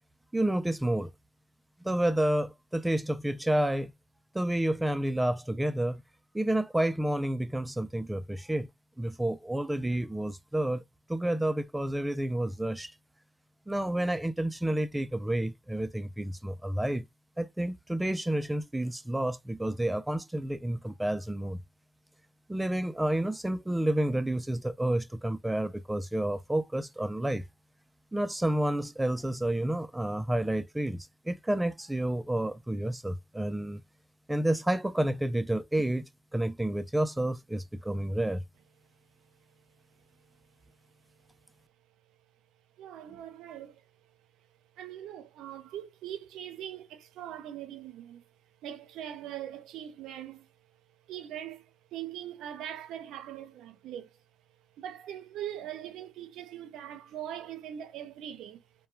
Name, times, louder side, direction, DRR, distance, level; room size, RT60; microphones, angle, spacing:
voice 1, 0.3-1.1 1.8-3.9 4.3-6.0 6.3-8.7 9.0-10.8 11.1-12.9 13.7-17.1 17.4-21.6 22.5-27.4 28.1-33.8 34.3-38.4, right 1 dB, 10° right, 0.4 m, -30 dB
voice 2, 42.8-43.9 44.8-48.3 48.6-50.5 51.1-54.2 54.8-58.6, right 11 dB, 85° right, 0.5 m, -41 dB
2.2 x 2.1 x 3.0 m
cardioid pair, 90°, 0 cm